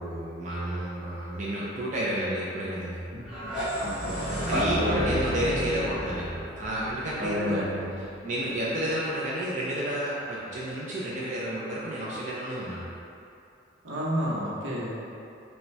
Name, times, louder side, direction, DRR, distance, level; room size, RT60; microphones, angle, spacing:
voice 1, 0.0-3.0 4.5-7.7 8.2-12.9, right 1 dB, 40° right, -7 dB, 0.5 m, -31 dB
sound 1, 3.1-8.0, equal, 5° right, 1.2 m, -32 dB
voice 2, 3.8-5.0 7.2-7.8 13.8-15.0, equal, 90° right, -6 dB, 0.9 m, -30 dB
5.2 x 2.2 x 3.2 m, 2.6 s
head